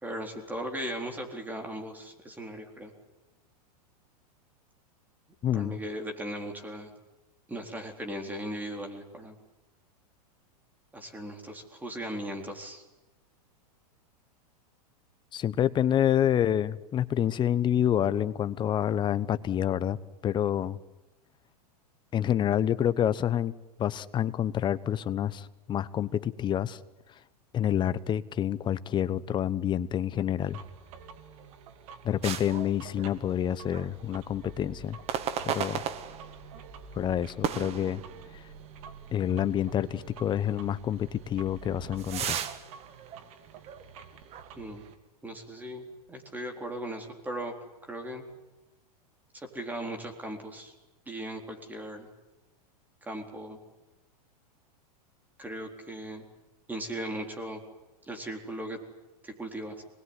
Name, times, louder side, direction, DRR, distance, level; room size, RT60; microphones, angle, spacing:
voice 1, 0.0-2.9 5.5-6.9 7.5-9.3 10.9-12.8 44.6-44.8 45.2-47.5 47.9-48.2 49.3-50.7 51.1-52.1 53.0-53.6 55.4-56.2 56.7-57.6 58.0-58.8 59.2-59.8, right 1 dB, 10° right, 3 dB, 4.1 m, -38 dB
voice 2, 5.4-5.8 15.3-20.0 20.2-20.8 22.1-23.5 23.8-26.8 27.5-30.6 32.0-35.0 35.4-35.8 36.9-38.0 39.1-42.4, left 10 dB, 20° left, 16 dB, 1.0 m, -28 dB
sound 1, 30.4-44.9, right 5 dB, 60° right, 3.1 m, -49 dB
sound 2, 32.2-33.4 33.7-33.9 35.1-36.6 37.4-38.6 39.0-39.1 39.8-39.9 41.2-43.9 44.3-44.5, right 9 dB, 30° right, 1.8 m, -35 dB
25.5 x 21.0 x 9.8 m, 1.0 s
hypercardioid pair, 135°, 20 cm